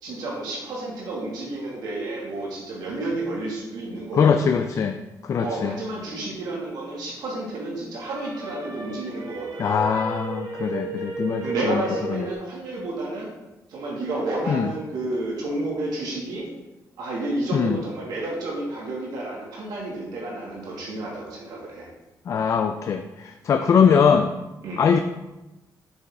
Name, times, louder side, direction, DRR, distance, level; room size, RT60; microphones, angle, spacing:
voice 1, 0.0-4.7 5.4-9.8 11.4-13.3 13.7-16.5 17.0-21.9 23.6-23.7 24.6-24.8, right 2 dB, 85° right, -4 dB, 2.1 m, -31 dB
voice 2, 4.2-5.0 5.2-5.7 9.6-11.8 12.1-12.3 14.5-14.7 17.5-17.8 22.3-24.3 24.8-25.0, left 6 dB, 50° left, 7 dB, 0.4 m, -21 dB
sound 1, 6.1-7.6 8.0-12.3, right 3 dB, 70° right, 1.2 m, -35 dB
7.0 x 6.3 x 3.6 m, 1.0 s
cardioid pair, 120°, 7 cm